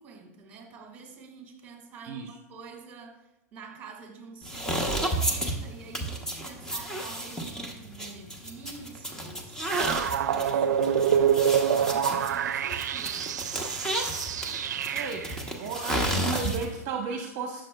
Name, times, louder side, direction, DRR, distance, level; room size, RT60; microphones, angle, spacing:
voice 1, 0.0-3.2 3.5-13.4, right 4 dB, 20° right, 3 dB, 1.7 m, -47 dB
sound 1, 4.4-16.8, right 1 dB, 5° left, 0.8 m, -32 dB
sound 2, 9.7-15.4, right 8 dB, 85° right, 0.4 m, -26 dB
voice 2, 15.6-17.6, right 5 dB, 40° right, 2 dB, 0.9 m, -33 dB
9.0 x 6.7 x 2.2 m, 0.96 s
hypercardioid pair, 140°, 9 cm